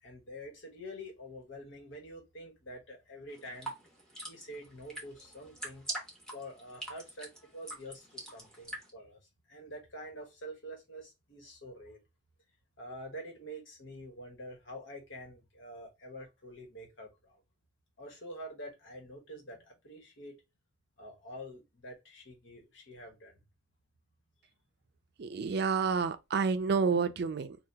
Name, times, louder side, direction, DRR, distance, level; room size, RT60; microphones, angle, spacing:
voice 1, 0.0-3.7 4.1-5.9 6.3-9.2 9.5-12.0 12.8-17.4 18.0-20.4 21.0-23.4, equal, 75° left, 1.3 m, -47 dB
sound 1, 3.3-8.9, right 1 dB, 5° left, 1.0 m, -43 dB
voice 2, 25.2-27.6, right 5 dB, 55° right, 0.4 m, -29 dB
2.8 x 2.3 x 3.4 m
head